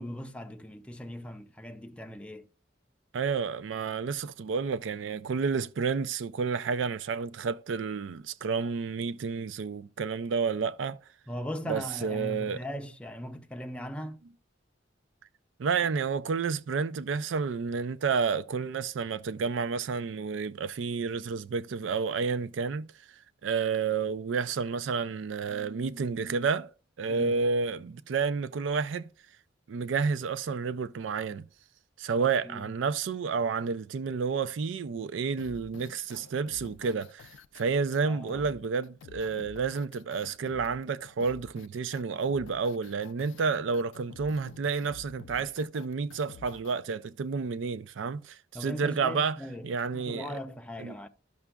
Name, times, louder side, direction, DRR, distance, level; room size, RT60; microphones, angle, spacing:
voice 1, 0.0-2.5 11.3-14.2 27.1-27.4 32.4-32.7 38.1-38.5 48.5-51.1, left 1 dB, 5° left, 0.5 m, -39 dB
voice 2, 3.1-11.0 11.7-12.6 15.6-26.7 27.0-29.1 29.7-31.4 32.0-49.4 49.6-50.4 50.8-51.0, right 5 dB, 85° right, 0.4 m, -30 dB
sound 1, 35.4-46.8, left 6 dB, 90° left, 0.4 m, -50 dB
12.5 x 6.0 x 2.2 m
head